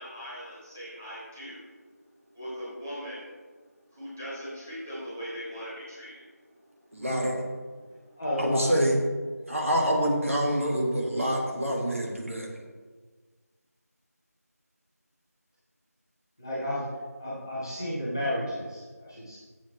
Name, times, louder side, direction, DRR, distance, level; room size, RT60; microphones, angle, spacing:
voice 1, 0.0-1.8 2.1-3.4 3.9-6.9 7.2-7.5 8.0-8.1, equal, 10° right, -11 dB, 1.3 m, -41 dB
voice 2, 6.9-7.4 8.4-9.0 9.5-12.5, equal, 55° right, -1 dB, 1.8 m, -26 dB
voice 3, 8.2-8.7 16.4-16.9 17.2-19.4, left 1 dB, 10° left, -11 dB, 1.0 m, -32 dB
12.5 x 7.3 x 3.2 m, 1.5 s
figure-of-eight pair, 175°, 9 cm